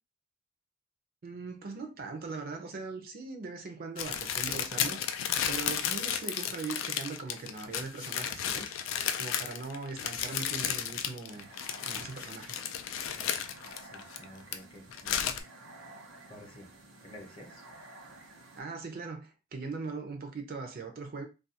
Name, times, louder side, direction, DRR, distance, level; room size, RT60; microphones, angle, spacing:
voice 1, 1.2-8.7 9.2-11.5 11.8-12.6 18.6-21.2, right 4 dB, 50° right, 0.4 m, -40 dB
sound 1, 4.0-14.5 14.9-15.4, left 9 dB, 80° left, 0.3 m, -33 dB
sound 2, 11.3-18.6, right 2 dB, 85° right, 0.7 m, -52 dB
voice 2, 13.1-13.5 13.8-15.4 15.7-15.9 16.3-16.7 17.0-17.6, left 1 dB, 30° left, 0.7 m, -50 dB
2.3 x 2.2 x 2.7 m
head